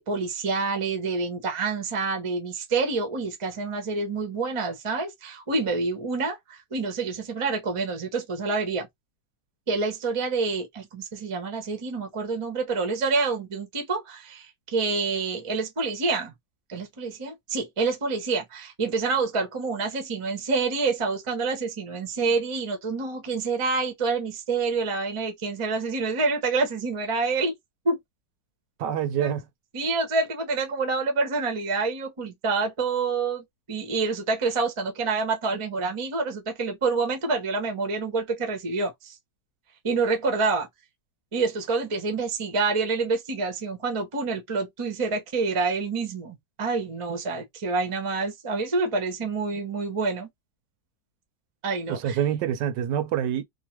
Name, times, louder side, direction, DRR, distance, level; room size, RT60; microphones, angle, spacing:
voice 1, 0.0-8.9 9.7-16.3 16.7-27.5 27.8-28.0 29.2-29.4 29.7-39.1 39.8-40.7 41.3-50.3 51.6-52.2, right 4 dB, 35° right, 0.5 m, -27 dB
voice 2, 28.8-29.5 51.9-53.4, right 9 dB, 80° right, 1.2 m, -26 dB
3.0 x 2.1 x 3.0 m
omnidirectional pair, 1.9 m